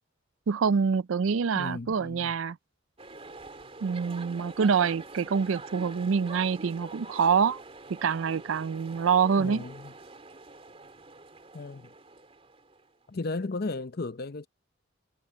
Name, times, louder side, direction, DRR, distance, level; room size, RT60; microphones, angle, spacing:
voice 1, 0.5-2.6 3.8-7.6 7.9-9.6, right 6 dB, 80° right, 0.4 m, -26 dB
voice 2, 1.5-2.3 9.4-9.9 11.5-11.9 13.1-14.5, left 3 dB, 50° left, 0.7 m, -35 dB
sound 1, 3.0-12.9, right 3 dB, 30° right, 3.2 m, -45 dB
head